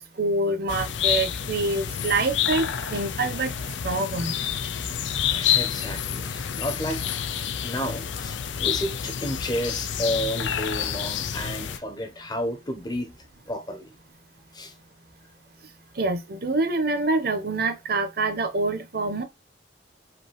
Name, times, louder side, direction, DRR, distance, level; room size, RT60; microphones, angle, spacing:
voice 1, 0.2-3.5 3.8-4.3 16.0-19.2, right 3 dB, 55° right, 0.9 m, -26 dB
sound 1, 0.7-11.8, left 8 dB, 70° left, 0.5 m, -28 dB
voice 2, 5.3-7.0 7.3-13.1 13.5-13.9 14.5-14.7, equal, 20° left, 0.9 m, -31 dB
5.1 x 2.7 x 3.1 m
head